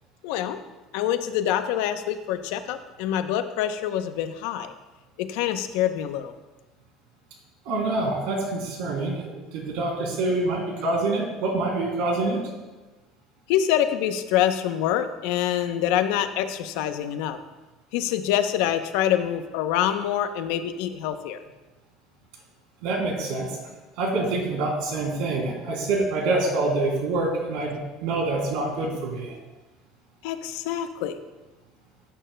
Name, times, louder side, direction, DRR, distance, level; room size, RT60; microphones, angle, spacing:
voice 1, 0.2-0.6 0.9-4.7 5.2-6.3 13.5-17.4 17.9-21.4 30.2-31.2, left 10 dB, 80° left, 9 dB, 0.7 m, -25 dB
voice 2, 7.6-9.2 9.5-12.4 22.8-23.5 24.0-29.3, right 2 dB, 80° right, 0 dB, 2.9 m, -26 dB
16.0 x 8.9 x 2.2 m, 1.2 s
cardioid pair, 165°, 0 cm